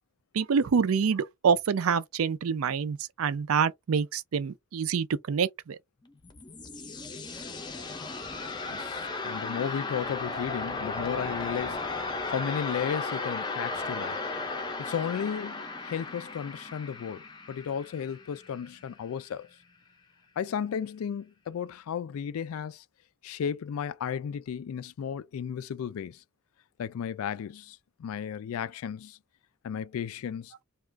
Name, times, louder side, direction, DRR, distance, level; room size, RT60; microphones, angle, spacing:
voice 1, 0.3-5.8, right 6 dB, 85° right, 0.4 m, -26 dB
sound 1, 6.0-18.9, left 3 dB, 20° left, 0.5 m, -35 dB
voice 2, 8.5-14.2 14.8-19.5 20.4-22.8 23.2-26.2 26.8-29.2 29.6-30.5, left 8 dB, 90° left, 0.3 m, -34 dB
2.4 x 2.3 x 3.2 m
head